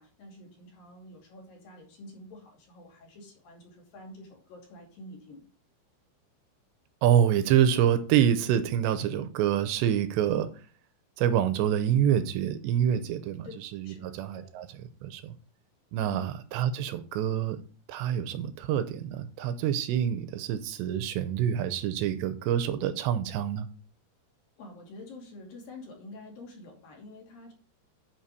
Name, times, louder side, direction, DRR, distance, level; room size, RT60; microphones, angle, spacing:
voice 1, 0.0-5.4 13.4-13.6 13.8-14.5 16.1-16.3 24.6-27.5, left 2 dB, 55° left, 3.9 m, -47 dB
voice 2, 7.0-10.5 11.2-13.5 13.7-14.7 15.0-15.3 15.9-17.6 17.9-23.7, right 10 dB, 85° right, 2.8 m, -26 dB
10.5 x 5.3 x 4.7 m
omnidirectional pair, 5.4 m